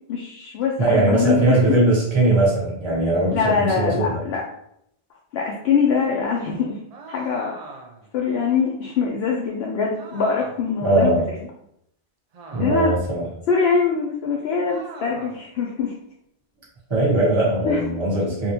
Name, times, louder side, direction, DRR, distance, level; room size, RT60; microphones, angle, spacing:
voice 1, 0.1-1.6 3.3-4.4 5.3-6.8 7.1-7.5 8.1-11.1 12.6-12.9 13.5-15.9 17.6-17.8, left 5 dB, 75° left, -2 dB, 0.8 m, -23 dB
voice 2, 0.8-4.1 10.8-11.2 12.5-13.3 16.9-18.5, right 2 dB, 25° right, -5 dB, 1.1 m, -20 dB
sound 1, 6.9-8.1 9.9-10.8 12.3-13.0 14.7-15.5, right 3 dB, 55° right, 0.4 m, -41 dB
3.5 x 2.4 x 2.8 m, 0.74 s
omnidirectional pair, 1.1 m